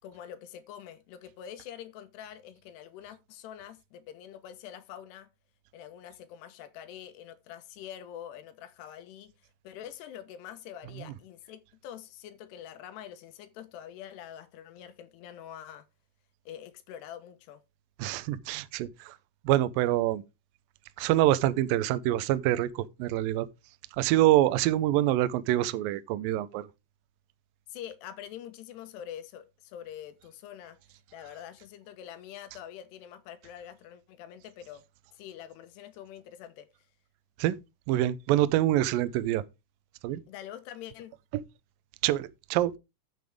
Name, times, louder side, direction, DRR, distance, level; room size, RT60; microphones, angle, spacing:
voice 1, 0.0-5.3 5.7-9.3 9.6-15.9 16.5-17.6 27.7-30.8 31.1-34.9 35.1-36.7 40.3-41.1, left 10 dB, 90° left, 3.2 m, -45 dB
voice 2, 18.0-19.2 19.4-20.2 21.0-23.5 23.9-26.7 37.4-37.6 37.9-39.4 40.0-40.2 41.3-41.4 42.0-42.8, right 14 dB, 80° right, 2.1 m, -26 dB
13.0 x 6.9 x 3.6 m
omnidirectional pair, 4.7 m